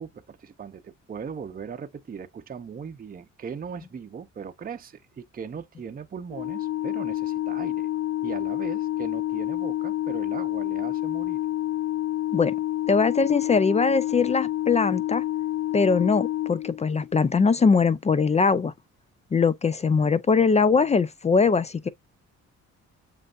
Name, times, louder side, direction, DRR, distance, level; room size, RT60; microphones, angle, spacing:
voice 1, 0.0-7.9 8.2-11.4, right 6 dB, 30° right, 0.6 m, -38 dB
Organ, 6.3-17.2, left 14 dB, 50° left, 0.8 m, -28 dB
voice 2, 12.9-15.2 15.7-18.7 19.3-21.9, left 5 dB, 25° left, 0.3 m, -21 dB
7.6 x 2.6 x 2.4 m
cardioid pair, 90°, 30 cm